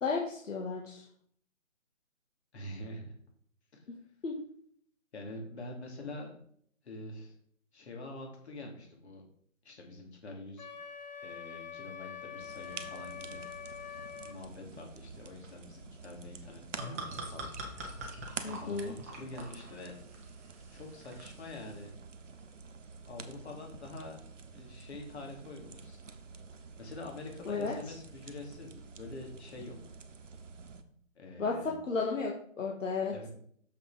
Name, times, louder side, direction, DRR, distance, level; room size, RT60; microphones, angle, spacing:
voice 1, 0.0-1.1 4.2-4.3 18.4-18.9 27.4-27.9 31.4-33.1, left 4 dB, 70° left, 0 dB, 1.8 m, -33 dB
voice 2, 2.5-3.1 3.7-3.9 5.1-6.4 6.8-7.4 7.7-9.2 9.6-10.7 11.2-13.4 13.9-17.5 18.2-19.9 20.7-21.9 23.0-24.2 24.5-26.0 26.8-29.8 31.2-31.7 33.1-33.3, left 2 dB, 55° left, 1 dB, 3.3 m, -45 dB
Wind instrument woodwind instrument, 10.6-14.4, left 7 dB, 35° left, 1.0 m, -45 dB
sound 1, 12.4-30.8, right 5 dB, 65° right, 1.1 m, -49 dB
sound 2, 16.4-21.9, right 2 dB, 10° right, 0.7 m, -45 dB
7.0 x 6.1 x 5.1 m, 0.63 s
hypercardioid pair, 155°, 40 cm